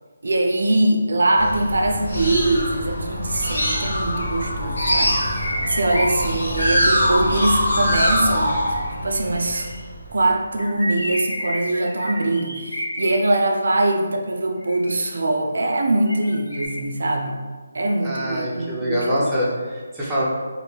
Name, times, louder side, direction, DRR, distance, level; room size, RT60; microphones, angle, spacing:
voice 1, 0.2-8.8 9.0-9.7 10.1-17.4 17.7-19.4, right 2 dB, 70° right, 3 dB, 0.3 m, -22 dB
sound 1, 1.4-10.4, equal, 70° left, 0.9 m, -23 dB
sound 2, 3.3-4.4 5.1-6.6 8.4-9.8 10.6-13.2 14.6-15.2 16.1-16.7, equal, 40° left, 0.8 m, -31 dB
voice 2, 18.0-20.2, equal, 5° right, -10 dB, 0.5 m, -24 dB
2.4 x 2.1 x 3.2 m, 1.4 s
hypercardioid pair, 170°, 0 cm